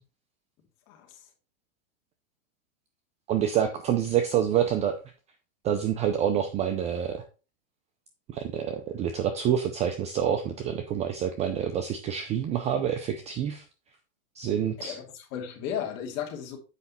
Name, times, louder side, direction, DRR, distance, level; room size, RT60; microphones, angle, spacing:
voice 1, 0.9-1.2 4.5-4.7 14.8-15.0 15.3-16.6, left 9 dB, 35° left, 2.6 m, -35 dB
voice 2, 3.3-5.0 5.6-7.3 8.3-13.6 14.4-15.0, right 9 dB, 15° right, 0.4 m, -27 dB
8.2 x 5.3 x 4.1 m
supercardioid pair, 140°, 42 cm